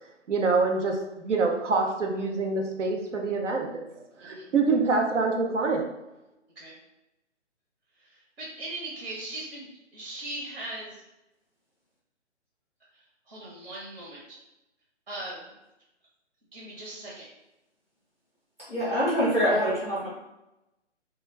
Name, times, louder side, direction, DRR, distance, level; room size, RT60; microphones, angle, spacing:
voice 1, 0.3-3.7 4.0-5.9, right 4 dB, 80° right, 2 dB, 0.6 m, -26 dB
voice 2, 8.1-9.7 9.9-11.0 13.3-14.4 15.1-15.5 16.5-17.2, right 2 dB, 55° right, -5 dB, 1.0 m, -39 dB
voice 3, 18.7-20.1, equal, 15° right, -9 dB, 0.7 m, -24 dB
2.3 x 2.2 x 3.1 m, 0.93 s
hypercardioid pair, 165°, 36 cm